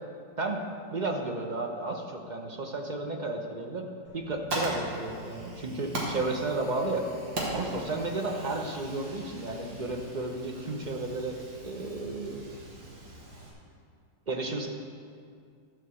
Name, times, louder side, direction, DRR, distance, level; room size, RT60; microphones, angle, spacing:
voice 1, 0.9-7.1 7.5-11.4 11.6-12.5 14.3-14.7, right 2 dB, 50° right, 2 dB, 0.5 m, -33 dB
Fire, 4.1-13.5, right 1 dB, 85° right, 2.6 m, -39 dB
12.5 x 5.7 x 7.0 m, 2.3 s
omnidirectional pair, 2.0 m